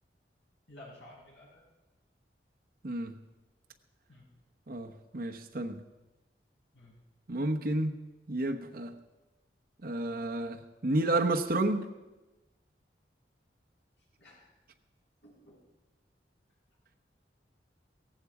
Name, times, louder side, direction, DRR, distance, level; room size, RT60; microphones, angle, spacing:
voice 1, 0.7-1.6 4.1-4.3 6.7-7.0 14.2-14.5 15.2-15.6, left 1 dB, 80° left, -5 dB, 6.9 m, -53 dB
voice 2, 2.8-3.2 4.7-5.8 7.3-7.9 8.3-8.9 9.8-11.9, right 2 dB, 55° right, 3 dB, 1.0 m, -31 dB
16.5 x 15.5 x 4.9 m, 1.1 s
head